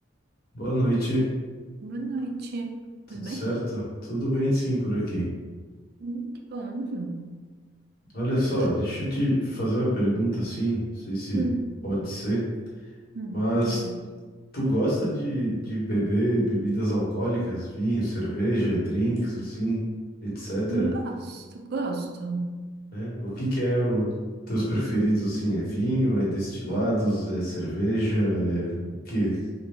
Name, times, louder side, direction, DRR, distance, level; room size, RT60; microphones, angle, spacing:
voice 1, 0.5-1.3 3.1-5.3 8.1-11.5 11.8-12.5 13.3-13.8 14.5-19.8 20.2-20.9 22.9-24.1 24.5-29.4, right 1 dB, 50° left, -7 dB, 1.3 m, -26 dB
voice 2, 1.8-2.8 3.1-3.5 6.0-7.3 11.3-11.6 13.1-14.0 20.7-22.6, right 2 dB, 50° right, 3 dB, 0.3 m, -32 dB
3.2 x 2.4 x 3.5 m, 1.4 s
head